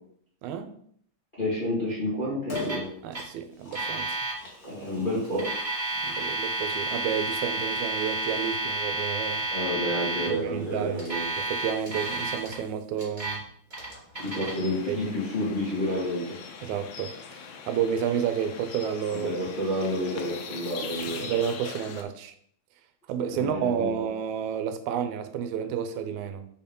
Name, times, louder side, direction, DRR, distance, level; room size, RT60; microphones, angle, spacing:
voice 1, 0.4-0.7 3.0-4.2 6.0-9.5 10.3-11.0 11.4-13.4 14.9-15.1 16.6-19.3 21.2-22.3 23.1-26.5, right 8 dB, 80° right, 2.0 m, -30 dB
voice 2, 1.4-2.9 4.6-5.5 6.1-6.3 9.5-11.2 14.2-16.2 19.1-21.3 23.3-24.0, left 1 dB, 20° left, 1.9 m, -30 dB
Liquid, 2.5-2.8 3.4-13.1 13.4-13.5, left 2 dB, 35° left, 2.0 m, -46 dB
Alarm, 2.5-2.9 3.1-3.2 3.7-4.3 5.2-10.3 11.0-12.5 13.0-13.4 13.7-14.5, right 2 dB, 15° right, 2.0 m, -31 dB
sound 1, 14.1-22.0, left 6 dB, 75° left, 2.1 m, -42 dB
5.3 x 4.5 x 5.3 m
omnidirectional pair, 3.4 m